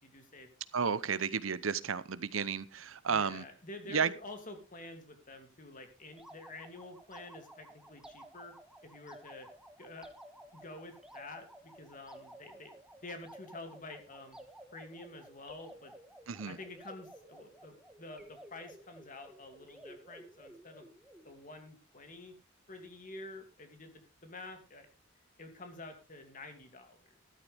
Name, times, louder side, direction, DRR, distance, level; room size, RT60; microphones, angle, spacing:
voice 1, 0.0-0.5 3.1-8.5 8.8-9.5 9.8-10.1 10.5-12.7 13.0-14.4 14.7-15.9 16.4-20.9 21.2-22.3 22.7-24.9 25.4-27.0, left 2 dB, 40° left, 6 dB, 2.6 m, -49 dB
voice 2, 0.7-3.4 3.9-4.1 16.3-16.6, right 6 dB, 80° right, 17 dB, 0.8 m, -32 dB
sound 1, 6.1-21.3, right 1 dB, 5° right, 1.3 m, -54 dB
13.5 x 12.0 x 3.5 m, 0.31 s
head